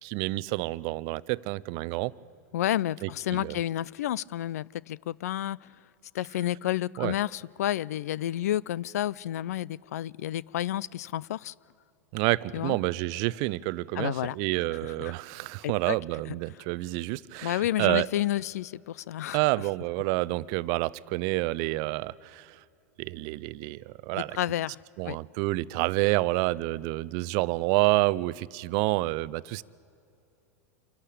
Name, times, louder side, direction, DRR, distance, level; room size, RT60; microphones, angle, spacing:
voice 1, 0.0-2.1 3.0-3.6 7.0-7.1 12.1-18.1 19.3-22.6 23.0-24.4 25.0-29.6, right 21 dB, 50° right, 0.5 m, -28 dB
voice 2, 2.5-5.7 6.1-11.5 12.5-12.8 13.9-14.4 14.8-15.1 15.6-16.0 17.4-19.4 24.2-24.8 25.1-25.2, left 13 dB, 70° left, 0.4 m, -30 dB
27.0 x 12.0 x 8.4 m
hypercardioid pair, 100°, 9 cm